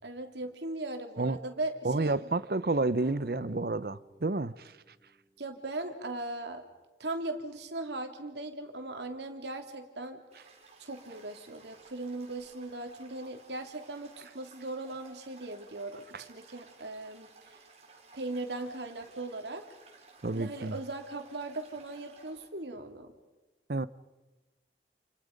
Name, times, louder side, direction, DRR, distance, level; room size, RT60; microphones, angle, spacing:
voice 1, 0.0-2.3 5.4-6.6 7.0-10.2 10.8-17.6 18.1-19.7 20.3-23.1, right 2 dB, 80° right, 3.0 m, -39 dB
voice 2, 1.8-4.7 20.2-20.7 23.7-23.9, right 2 dB, 55° right, 0.8 m, -30 dB
sound 1, 3.0-6.2, right 1 dB, 20° right, 2.7 m, -54 dB
Toilet flush, 10.3-22.5, right 3 dB, 35° right, 4.1 m, -57 dB
29.0 x 29.0 x 5.3 m
head